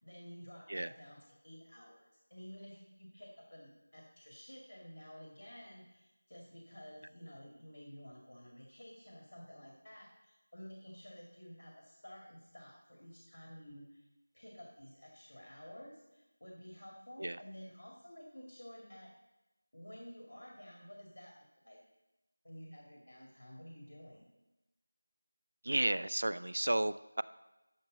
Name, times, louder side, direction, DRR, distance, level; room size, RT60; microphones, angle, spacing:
voice 1, 0.0-14.1 14.3-19.1 19.7-21.8 22.4-24.3, equal, 75° left, -1 dB, 2.2 m, -52 dB
voice 2, 25.6-27.2, right 1 dB, 55° right, 16 dB, 0.3 m, -33 dB
12.5 x 6.6 x 4.0 m, 1.0 s
figure-of-eight pair, 180°, 0 cm